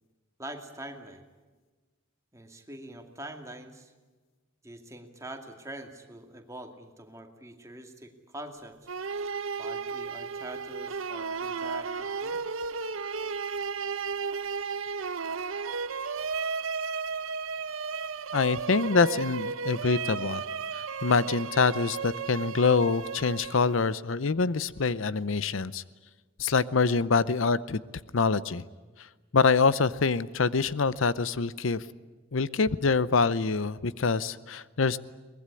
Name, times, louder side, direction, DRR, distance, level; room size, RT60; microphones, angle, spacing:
voice 1, 0.4-1.2 2.3-3.9 4.6-8.8 9.6-12.4, right 1 dB, 15° right, 4 dB, 2.3 m, -44 dB
sound 1, 8.9-23.9, right 5 dB, 90° right, 0.9 m, -34 dB
voice 2, 18.3-20.4 20.7-25.8 26.4-27.8 28.1-28.6 29.0-29.1 29.3-31.8 32.3-35.0, left 4 dB, 75° left, 17 dB, 0.7 m, -25 dB
23.0 x 20.5 x 9.8 m, 1.3 s
head